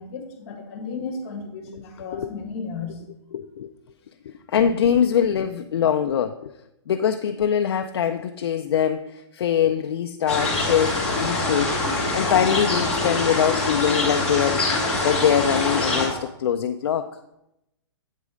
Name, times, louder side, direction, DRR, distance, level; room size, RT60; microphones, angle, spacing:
voice 1, 0.0-3.0, left 4 dB, 30° left, 2 dB, 1.6 m, -34 dB
voice 2, 3.3-3.7 4.3-6.5 6.9-17.2, left 8 dB, 60° left, 6 dB, 0.4 m, -23 dB
sound 1, 10.3-16.1, left 2 dB, 5° left, 1.5 m, -24 dB
8.2 x 4.2 x 5.0 m, 0.86 s
hypercardioid pair, 170°, 15 cm